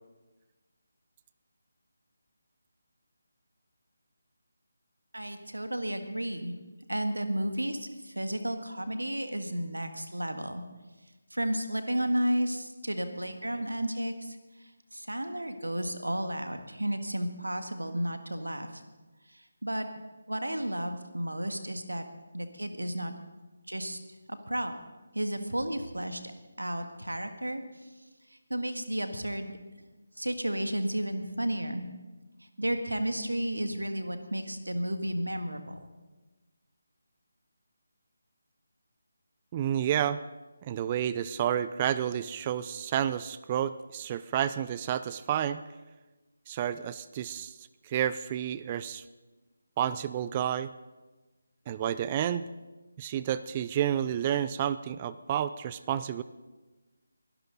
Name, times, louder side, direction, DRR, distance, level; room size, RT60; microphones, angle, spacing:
voice 1, 5.1-6.5 6.9-10.6 11.3-14.4 14.9-18.8 19.3-19.9 20.3-22.0 22.3-23.1 23.7-24.0 24.3-24.7 25.1-26.2 26.6-27.9 28.5-29.5 30.2-31.9 32.6-35.9, right 1 dB, 90° right, 7 dB, 1.7 m, -32 dB
voice 2, 39.5-40.2 40.6-45.6 46.5-47.5 47.9-49.0 49.8-50.7 51.7-52.5 53.0-56.2, right 10 dB, 25° right, 15 dB, 0.4 m, -30 dB
22.5 x 12.0 x 4.0 m, 1.2 s
figure-of-eight pair, 155°, 0 cm